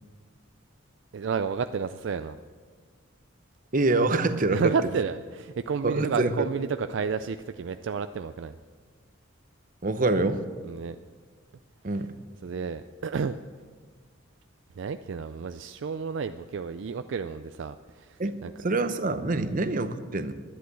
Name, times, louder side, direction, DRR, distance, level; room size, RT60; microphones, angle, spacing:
voice 1, 1.1-2.4 4.5-8.6 10.6-11.0 12.0-12.1 12.4-13.4 14.8-18.5 19.4-19.5, right 5 dB, 65° right, 10 dB, 0.4 m, -31 dB
voice 2, 3.7-4.7 5.8-6.3 9.8-10.4 11.8-12.1 18.2-18.4 18.6-20.3, right 2 dB, 40° right, 11 dB, 0.8 m, -25 dB
11.5 x 10.5 x 7.7 m, 1.5 s
head